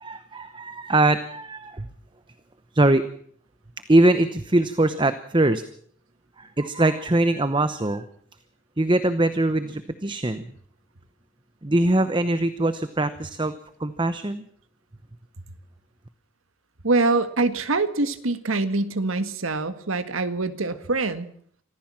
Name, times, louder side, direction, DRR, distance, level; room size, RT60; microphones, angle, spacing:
voice 1, 0.0-1.9 2.7-3.1 3.9-5.6 6.4-8.1 8.8-10.5 11.6-13.5 13.8-14.5, right 2 dB, 25° right, 12 dB, 0.8 m, -22 dB
voice 2, 16.8-21.3, right 3 dB, 85° right, 11 dB, 1.7 m, -24 dB
25.0 x 15.0 x 7.5 m, 0.62 s
head